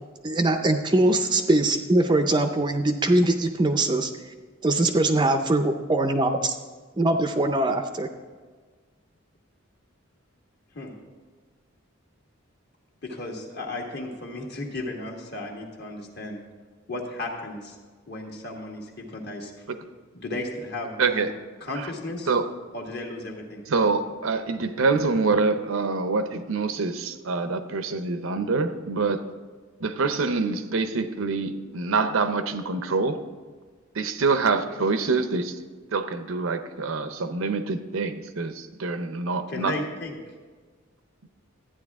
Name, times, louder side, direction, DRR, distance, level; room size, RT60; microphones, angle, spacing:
voice 1, 0.2-4.1 4.6-6.5 7.0-8.1, right 2 dB, 20° right, 7 dB, 0.5 m, -22 dB
voice 2, 13.0-16.4 16.9-17.8 18.1-19.5 20.1-21.3 21.6-22.3 22.7-23.6 39.5-40.1, left 2 dB, 50° left, 1 dB, 1.6 m, -34 dB
voice 3, 21.0-21.3 21.7-21.9 22.3-22.5 23.7-29.3 29.8-33.2 33.9-35.6 35.9-39.7, right 4 dB, 75° right, 10 dB, 0.7 m, -25 dB
12.5 x 9.4 x 3.6 m, 1.5 s
head